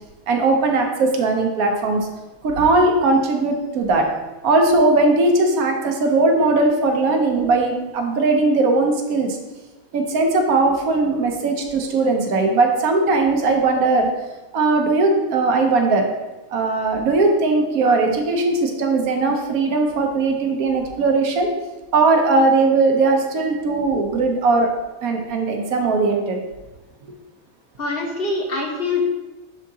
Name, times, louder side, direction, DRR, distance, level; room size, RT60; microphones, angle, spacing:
voice 1, 0.3-2.0 2.4-4.1 4.4-9.4 9.9-14.1 14.5-16.1 16.5-21.5 21.9-24.7 25.0-26.4, right 3 dB, 90° right, 3 dB, 1.3 m, -19 dB
voice 2, 27.8-29.0, left 3 dB, 45° left, 0 dB, 1.2 m, -24 dB
11.0 x 3.6 x 2.8 m, 1.1 s
omnidirectional pair, 1.5 m